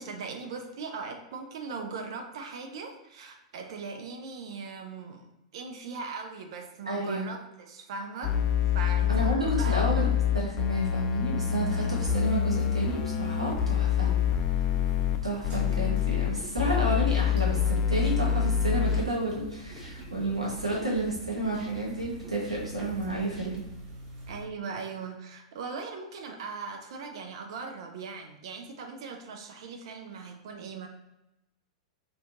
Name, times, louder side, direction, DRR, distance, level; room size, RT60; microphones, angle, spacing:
voice 1, 0.0-5.2 5.5-8.4 8.6-9.8 24.3-30.9, right 4 dB, 55° right, 4 dB, 0.4 m, -39 dB
voice 2, 6.9-7.3 9.1-10.1 10.3-14.1 15.2-23.6, right 1 dB, 85° right, -3 dB, 1.1 m, -31 dB
sound 1, 8.2-15.2 15.4-16.3 16.6-19.0, left 9 dB, 35° left, 0.4 m, -26 dB
sound 2, 11.9-24.4, right 2 dB, 35° right, 1.0 m, -46 dB
sound 3, 16.7-23.7, right 1 dB, 20° right, 0.7 m, -49 dB
2.5 x 2.3 x 3.7 m, 0.94 s
figure-of-eight pair, 100°, 3 cm